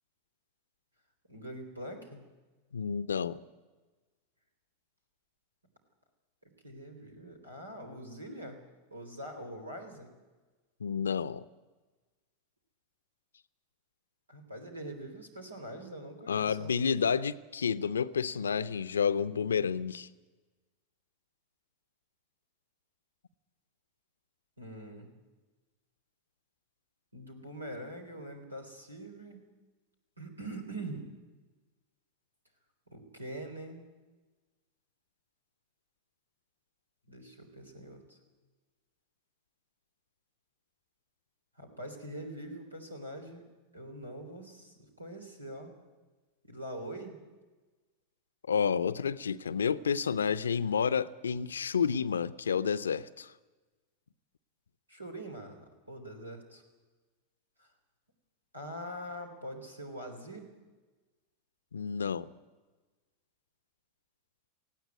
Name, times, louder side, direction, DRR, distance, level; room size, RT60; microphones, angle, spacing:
voice 1, 1.3-2.2 6.6-8.6 8.9-10.1 14.3-16.7 24.6-25.1 27.1-29.5 30.2-31.1 32.9-33.9 37.1-38.2 41.6-43.4 43.7-45.7 46.4-47.2 54.9-56.6 57.6-57.7 58.5-60.5, right 1 dB, 85° right, 5 dB, 3.5 m, -43 dB
voice 2, 2.7-3.4 10.8-11.4 16.3-20.1 48.5-53.3 61.7-62.3, left 6 dB, 75° left, 17 dB, 0.6 m, -30 dB
18.0 x 16.0 x 9.3 m, 1.3 s
figure-of-eight pair, 90°, 0 cm